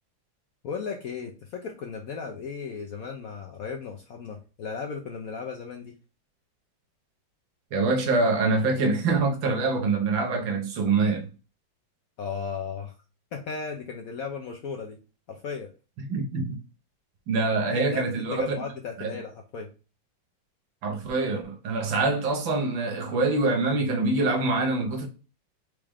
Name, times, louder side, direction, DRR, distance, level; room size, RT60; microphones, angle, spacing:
voice 1, 0.6-5.9 12.2-12.9 13.3-15.0 15.3-15.7 17.7-19.7, left 5 dB, 70° left, 0.8 m, -35 dB
voice 2, 7.7-11.3 16.0-16.6 17.3-18.5 19.0-19.1 20.8-25.1, right 3 dB, 80° right, 1.7 m, -25 dB
4.7 x 3.1 x 3.5 m
omnidirectional pair, 2.1 m